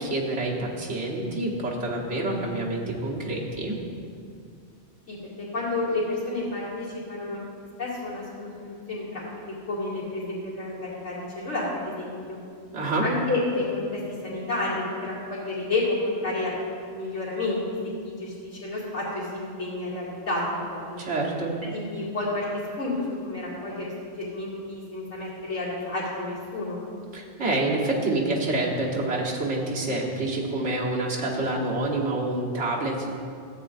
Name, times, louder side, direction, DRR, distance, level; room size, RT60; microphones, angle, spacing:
voice 1, 0.0-3.8 12.7-13.0 21.0-21.6 27.1-33.1, right 2 dB, 80° right, -3 dB, 1.6 m, -27 dB
voice 2, 5.1-7.4 7.8-12.4 13.0-16.5 16.8-21.0 21.6-22.4 22.8-26.8, left 2 dB, 75° left, -7 dB, 2.6 m, -30 dB
14.0 x 8.1 x 2.6 m, 2.3 s
omnidirectional pair, 1.2 m